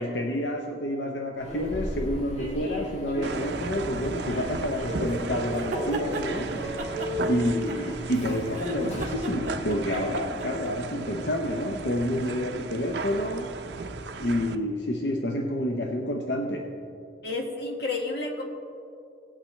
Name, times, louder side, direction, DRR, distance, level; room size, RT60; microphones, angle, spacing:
voice 1, 0.0-13.5 14.2-16.8, left 1 dB, 90° left, 2 dB, 0.8 m, -29 dB
Human voice / Subway metro underground, 1.4-9.3, equal, 40° left, 1.5 m, -35 dB
sound 1, 3.2-14.5, right 3 dB, 75° right, 0.6 m, -35 dB
sound 2, 5.5-6.3 6.8-8.2 8.5-10.7, right 2 dB, 45° right, 1.2 m, -36 dB
voice 2, 17.2-18.4, left 3 dB, 65° left, 0 dB, 1.8 m, -30 dB
18.0 x 8.6 x 3.2 m, 2.6 s
head